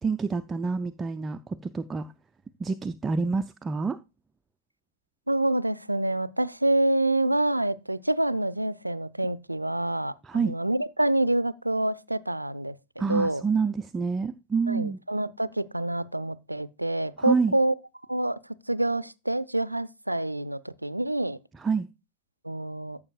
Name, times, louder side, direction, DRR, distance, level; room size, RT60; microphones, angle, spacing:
voice 1, 0.0-2.1 2.6-4.0 10.2-10.5 13.0-15.0 17.2-17.5 21.5-21.9, right 4 dB, 15° right, 0.5 m, -27 dB
voice 2, 5.3-13.4 14.7-17.7 18.1-18.4 18.7-21.4 22.4-23.0, right 1 dB, 85° right, 0.5 m, -27 dB
14.0 x 7.1 x 2.3 m
figure-of-eight pair, 90°, 0 cm